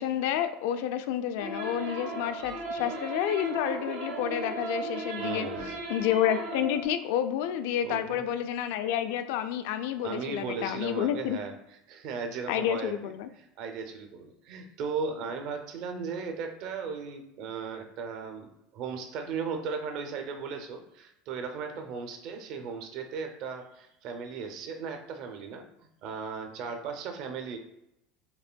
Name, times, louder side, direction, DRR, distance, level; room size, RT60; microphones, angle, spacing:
voice 1, 0.0-11.4 12.5-13.3, left 10 dB, 65° left, 10 dB, 0.3 m, -30 dB
sound 1, 1.4-6.9, right 2 dB, 80° right, 1.0 m, -36 dB
voice 2, 5.2-5.7 7.8-8.3 10.0-11.5 11.9-13.1 13.6-25.7 26.0-27.6, right 5 dB, 45° right, 5 dB, 0.5 m, -36 dB
5.3 x 2.5 x 2.2 m, 0.82 s
cardioid pair, 175°, 0 cm